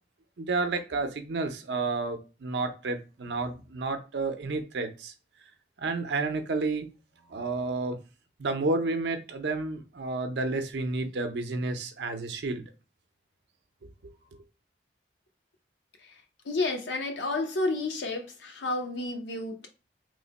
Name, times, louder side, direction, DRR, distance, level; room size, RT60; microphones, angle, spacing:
voice 1, 0.4-5.1 5.8-6.9 7.3-8.0 8.4-12.6, right 3 dB, 75° right, 0.5 m, -31 dB
voice 2, 16.4-19.7, left 2 dB, 85° left, 0.7 m, -31 dB
3.1 x 2.1 x 4.0 m
head